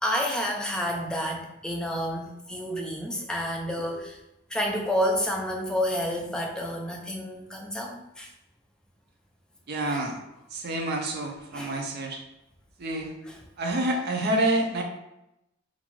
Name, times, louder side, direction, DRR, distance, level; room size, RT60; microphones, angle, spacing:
voice 1, 0.0-4.2 4.5-8.3 9.9-10.0 11.5-11.7, equal, 5° left, -1 dB, 0.4 m, -29 dB
voice 2, 9.7-10.2 10.5-12.2 12.8-13.1 13.6-14.8, right 1 dB, 50° right, 2 dB, 0.5 m, -28 dB
2.5 x 2.3 x 3.0 m, 0.89 s
head